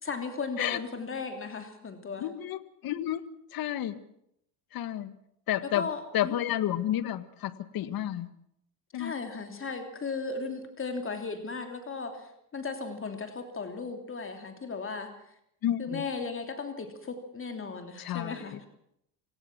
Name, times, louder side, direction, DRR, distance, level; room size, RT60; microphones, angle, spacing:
voice 1, 0.0-2.3 5.7-6.3 8.9-15.1 15.8-18.7, left 4 dB, 25° left, 5 dB, 3.1 m, -36 dB
voice 2, 2.2-3.2 3.5-4.0 4.7-5.1 5.5-5.9 6.1-8.3 8.9-9.1 15.6-16.0 18.0-18.6, left 12 dB, 50° left, 13 dB, 1.7 m, -31 dB
26.0 x 18.0 x 6.1 m, 0.75 s
supercardioid pair, 95°, 46 cm